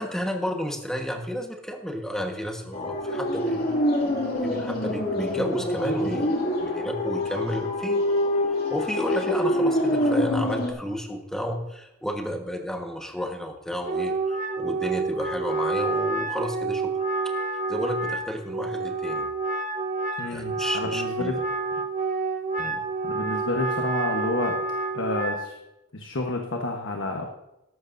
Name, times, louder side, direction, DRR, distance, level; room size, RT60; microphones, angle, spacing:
voice 1, 0.0-3.7 4.0-8.0 8.7-16.9 17.7-19.3 20.3-21.4 22.6-22.8, equal, 5° left, 2 dB, 1.3 m, -32 dB
sound 1, 2.7-10.7, left 1 dB, 50° left, 2.4 m, -25 dB
Wind instrument woodwind instrument, 13.8-25.5, right 3 dB, 40° right, 0.9 m, -28 dB
voice 2, 20.2-21.3 23.0-24.6 24.9-25.6 25.9-27.3, left 2 dB, 70° left, 2 dB, 1.2 m, -29 dB
14.0 x 12.0 x 2.7 m, 0.90 s
head